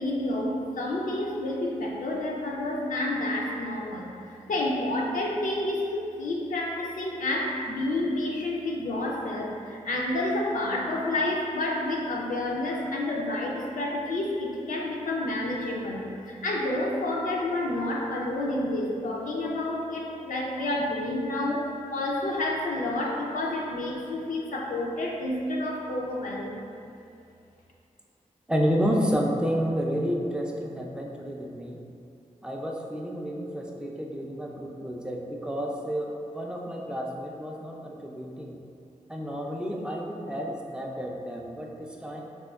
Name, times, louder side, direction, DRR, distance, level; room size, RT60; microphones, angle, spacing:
voice 1, 0.0-26.6, left 1 dB, 80° left, -2 dB, 0.4 m, -29 dB
voice 2, 28.5-31.8 32.4-38.6 39.1-42.2, equal, 5° right, -1 dB, 0.4 m, -30 dB
4.2 x 2.2 x 2.3 m, 2.6 s
wide cardioid pair, 80°, 14 cm